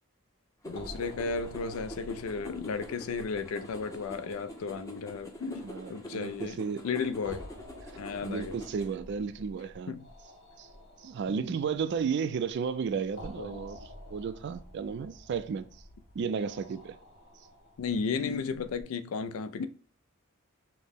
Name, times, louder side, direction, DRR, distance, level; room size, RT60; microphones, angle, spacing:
sound 1, 0.6-18.8, left 1 dB, 55° left, 0.9 m, -50 dB
sound 2, 0.6-8.9, equal, 15° left, 0.6 m, -46 dB
voice 1, 0.7-6.6 6.8-7.4 8.0-8.6 9.9-10.1 11.3-11.5 13.4-13.7 16.2-16.3 17.8-19.7, left 5 dB, 75° left, 0.4 m, -34 dB
voice 2, 5.6-6.9 8.2-9.9 10.6-10.7 11.0-15.7 16.1-17.0, right 6 dB, 55° right, 0.3 m, -33 dB
5.7 x 2.1 x 3.5 m
head